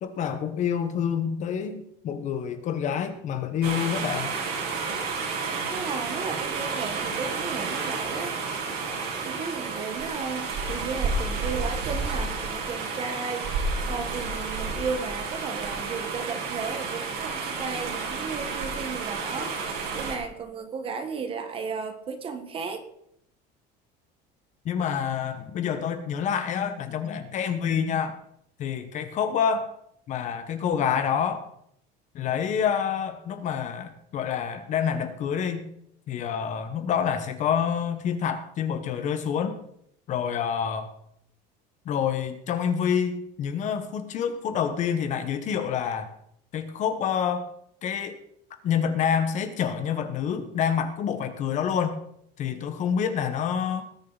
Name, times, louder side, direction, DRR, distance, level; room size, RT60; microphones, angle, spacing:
voice 1, 0.0-4.3 24.6-28.2 28.6-29.7 30.1-31.4 32.1-35.7 36.1-39.5 40.1-40.9 41.8-46.1 46.5-47.5 47.8-48.2 48.6-52.0 52.4-53.8, left 7 dB, 40° left, 9 dB, 1.2 m, -27 dB
sound 1, 3.6-20.2, right 4 dB, 55° right, 3.1 m, -31 dB
voice 2, 5.7-8.3 9.2-13.5 13.8-19.5 19.9-22.8, right 5 dB, 30° right, 8 dB, 1.3 m, -34 dB
20.0 x 7.7 x 4.0 m, 0.71 s
cardioid pair, 170°, 20 cm